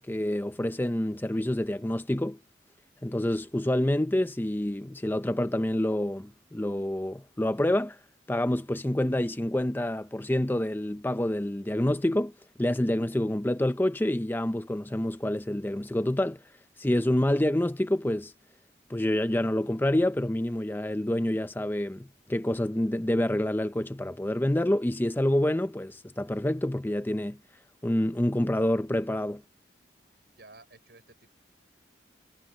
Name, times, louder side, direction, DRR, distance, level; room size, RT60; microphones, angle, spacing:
voice 1, 0.0-2.4 3.0-8.0 8.3-12.3 12.6-16.4 16.8-18.3 18.9-27.4 27.8-29.4, left 1 dB, 10° left, 0.5 m, -27 dB
voice 2, 30.4-31.3, right 2 dB, 65° right, 5.9 m, -53 dB
head